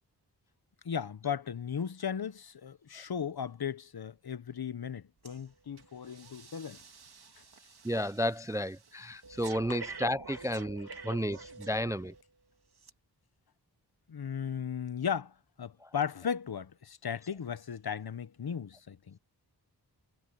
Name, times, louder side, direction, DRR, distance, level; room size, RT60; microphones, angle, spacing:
voice 1, 0.8-6.8 9.7-9.8 14.1-19.2, left 7 dB, 65° left, 1.1 m, -36 dB
Breathing, 5.2-5.4 5.8-12.2 12.8-12.9, right 4 dB, 65° right, 2.2 m, -48 dB
voice 2, 7.8-12.1 15.8-15.9, equal, 10° right, 0.3 m, -32 dB
wide cardioid pair, 65°, 40 cm